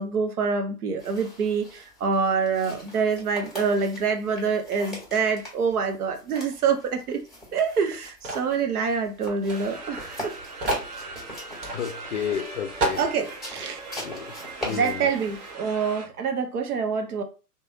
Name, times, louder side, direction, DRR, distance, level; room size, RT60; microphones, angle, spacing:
voice 1, 0.0-7.2 7.5-10.3 13.0-13.8 14.6-17.2, right 5 dB, 70° right, 0.8 m, -26 dB
sound 1, 1.0-15.5, left 1 dB, ahead, 1.3 m, -41 dB
sound 2, 8.2-8.5 9.4-9.6 9.8-9.9 10.6-10.9 11.6-11.8 12.3-12.4 12.8-13.1, right 2 dB, 45° right, 1.3 m, -28 dB
sound 3, 9.5-16.1, right 3 dB, 30° right, 0.4 m, -40 dB
voice 2, 11.7-13.0 14.0-14.3 14.6-15.1, left 8 dB, 50° left, 0.5 m, -31 dB
3.1 x 2.3 x 2.6 m
figure-of-eight pair, 115°, 47 cm